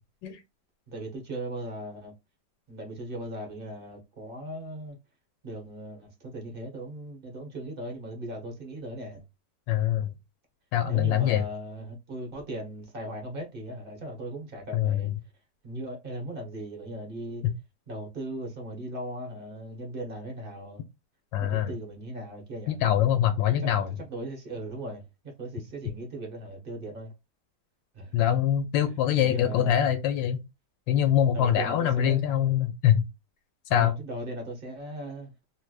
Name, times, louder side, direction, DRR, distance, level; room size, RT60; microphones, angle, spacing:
voice 1, 0.9-2.1 2.7-5.0 5.4-9.2 10.9-15.1 15.6-17.4 17.9-20.8 21.4-22.8 23.6-23.7 24.0-25.1 25.4-27.1 27.9-28.2 29.2-29.8 31.3-32.2 33.7-35.3, right 1 dB, 35° right, 1.1 m, -38 dB
voice 2, 9.7-10.1 10.7-11.4 14.7-15.1 17.4-17.5 21.3-21.7 22.7-23.9 28.1-30.4 30.9-33.0 33.7-33.9, left 10 dB, 85° left, 1.3 m, -24 dB
3.2 x 3.1 x 2.3 m
omnidirectional pair, 1.9 m